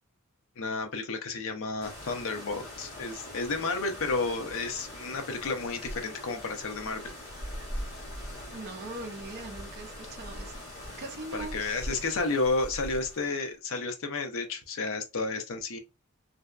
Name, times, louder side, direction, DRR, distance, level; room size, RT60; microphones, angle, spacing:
voice 1, 0.6-7.1 11.3-15.8, left 3 dB, 60° left, 0.6 m, -32 dB
sound 1, 1.8-13.5, equal, 40° left, 1.4 m, -42 dB
voice 2, 8.5-10.6 11.0-12.1, right 2 dB, 45° right, 0.4 m, -41 dB
2.6 x 2.1 x 2.3 m
head